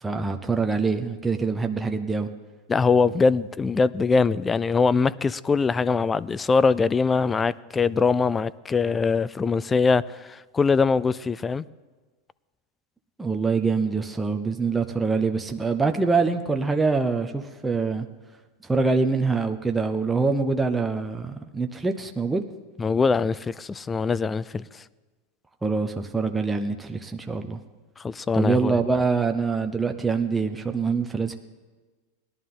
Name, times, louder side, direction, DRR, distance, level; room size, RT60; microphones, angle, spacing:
voice 1, 0.0-2.3 13.2-18.1 18.6-22.4 25.6-27.6 28.3-31.4, right 4 dB, 10° right, 0.7 m, -25 dB
voice 2, 2.7-11.6 22.8-24.6 28.0-28.8, left 4 dB, 20° left, 0.3 m, -22 dB
18.0 x 11.0 x 3.8 m
hypercardioid pair, 115°, 0 cm